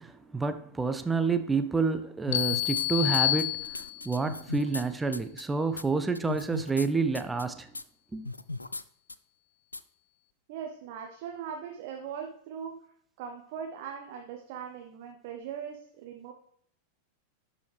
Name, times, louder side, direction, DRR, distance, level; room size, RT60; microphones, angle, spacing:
voice 1, 0.0-7.7 8.1-8.3, right 4 dB, 10° right, 0.6 m, -29 dB
sound 1, 2.3-2.9 3.1-4.8 5.1-5.4 5.8-5.9 6.1-6.9 7.1-7.4 7.7-7.8 8.2-8.8 9.1-9.2 9.7-9.8, left 2 dB, 80° left, 0.3 m, -37 dB
sound 2, 2.3-4.2, left 17 dB, 50° left, 0.6 m, -28 dB
voice 2, 10.5-12.7 13.2-16.3, right 7 dB, 50° right, 1.0 m, -40 dB
11.5 x 4.8 x 3.3 m
figure-of-eight pair, 90°, 0 cm